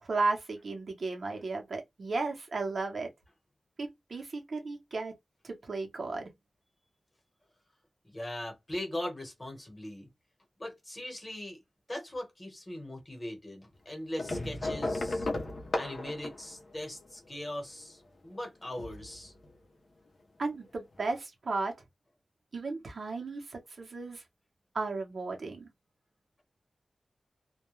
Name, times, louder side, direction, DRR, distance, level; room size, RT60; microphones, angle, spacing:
voice 1, 0.0-3.1 3.8-5.1 5.4-6.3 20.4-21.7 22.5-24.2 24.7-25.7, right 3 dB, 60° right, 0.7 m, -34 dB
voice 2, 8.0-10.1 10.6-11.6 11.9-15.3 15.7-19.3, left 1 dB, 25° left, 1.0 m, -40 dB
sound 1, 14.2-17.4 18.7-19.5 20.7-20.8 21.0-21.1, left 2 dB, 55° left, 0.6 m, -35 dB
2.2 x 2.1 x 3.0 m
wide cardioid pair, 125°, 0 cm